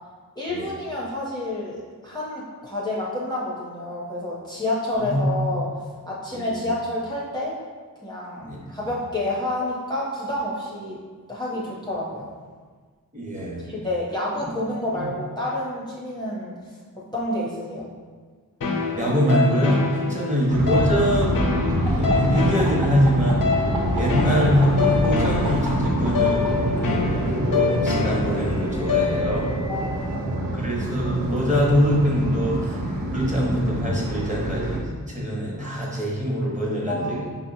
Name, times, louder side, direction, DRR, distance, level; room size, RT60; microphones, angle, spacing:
voice 1, 0.4-5.7 6.1-7.5 8.0-11.0 11.3-12.3 13.6-16.5 17.1-17.9 20.1-20.3 29.7-30.6 36.9-37.2, left 1 dB, 10° left, -6 dB, 0.7 m, -29 dB
voice 2, 5.0-5.4 6.3-6.7 8.4-8.6 13.1-13.6 14.9-15.1 19.0-21.4 21.8-23.6 23.9-26.4 26.7-29.5 30.5-32.8 33.1-37.2, equal, 20° right, -4 dB, 1.0 m, -24 dB
sound 1, 18.6-29.6, left 4 dB, 60° left, 0.7 m, -26 dB
sound 2, 20.5-34.8, right 1 dB, 65° right, 0.7 m, -26 dB
sound 3, 21.9-26.5 27.6-29.9, right 3 dB, 80° right, 1.2 m, -37 dB
5.2 x 2.8 x 2.7 m, 1.5 s
wide cardioid pair, 55°, 37 cm